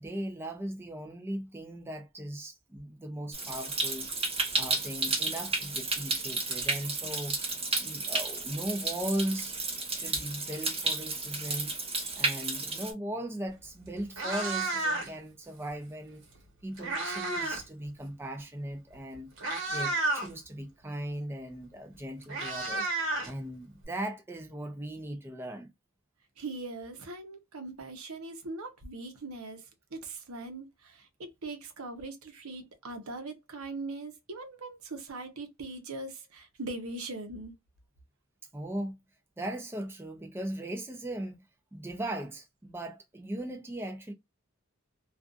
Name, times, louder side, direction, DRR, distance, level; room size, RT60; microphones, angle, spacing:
voice 1, 0.0-4.1 4.5-7.4 7.8-9.6 9.9-11.7 12.2-16.2 16.6-19.3 19.7-22.9 23.2-25.7 38.5-39.0 39.4-41.4 41.7-44.1, right 1 dB, 10° right, 0.5 m, -38 dB
Stream, 3.3-12.9, right 3 dB, 25° right, 1.0 m, -32 dB
Meow, 13.5-13.7 14.0-15.3 16.3-17.7 18.0-18.2 18.9-19.0 19.4-20.3 21.6-21.7 21.9-23.8, right 2 dB, 60° right, 1.3 m, -32 dB
voice 2, 26.4-29.7 29.9-37.5, right 2 dB, 80° right, 0.8 m, -41 dB
2.5 x 2.4 x 2.4 m
head